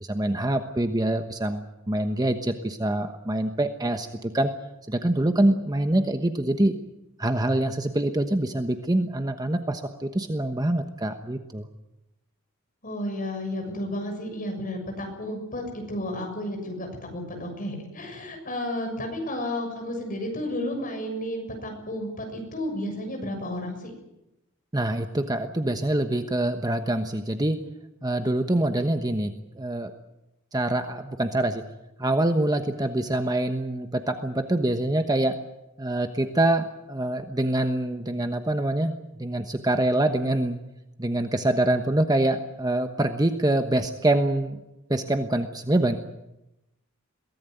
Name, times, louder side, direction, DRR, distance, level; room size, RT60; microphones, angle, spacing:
voice 1, 0.0-4.5 4.9-6.7 7.2-11.7 24.7-27.6 28.0-29.9 30.5-31.6 32.0-35.3 35.8-40.6 41.0-44.6 44.9-46.0, right 1 dB, 20° right, 6 dB, 1.1 m, -25 dB
voice 2, 12.8-15.6 15.9-23.9, left 1 dB, 40° left, 3 dB, 6.7 m, -32 dB
23.0 x 18.0 x 9.3 m, 0.93 s
head